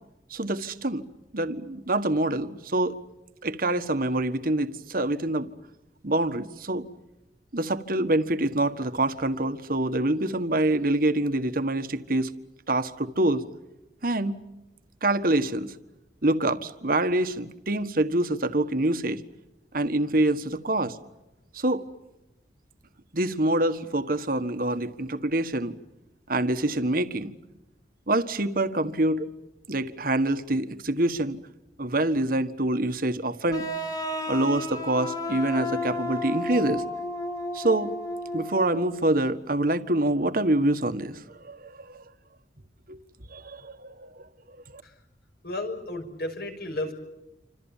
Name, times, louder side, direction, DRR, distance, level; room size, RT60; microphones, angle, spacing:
voice 1, 0.3-1.0 1.3-2.9 3.4-5.5 6.0-6.8 7.5-12.3 12.7-13.4 14.0-14.4 15.0-15.7 16.2-19.2 19.7-21.0 21.5-21.8 23.1-25.7 26.3-27.3 28.1-29.3 29.7-31.4 31.8-33.7 34.3-36.8 37.5-37.9 38.3-42.0 42.9-43.0 43.3-44.3 44.7-44.8, right 1 dB, 55° right, 9 dB, 1.6 m, -26 dB
sound 1, 33.5-39.0, left 1 dB, 20° left, 2.6 m, -32 dB
voice 2, 45.4-46.9, left 2 dB, 60° left, 5 dB, 6.1 m, -33 dB
28.5 x 26.0 x 7.4 m, 0.96 s
head